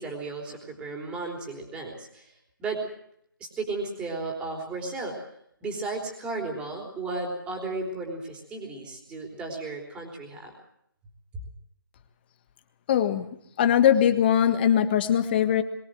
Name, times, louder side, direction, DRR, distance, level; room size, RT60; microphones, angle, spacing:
voice 1, 0.0-2.3 2.6-2.8 3.4-5.2 5.6-10.5, right 3 dB, 10° right, 0 dB, 3.7 m, -34 dB
voice 2, 12.9-13.3 13.6-15.6, left 9 dB, 30° left, 8 dB, 1.7 m, -21 dB
23.0 x 16.5 x 7.8 m, 0.73 s
hypercardioid pair, 160°, 12 cm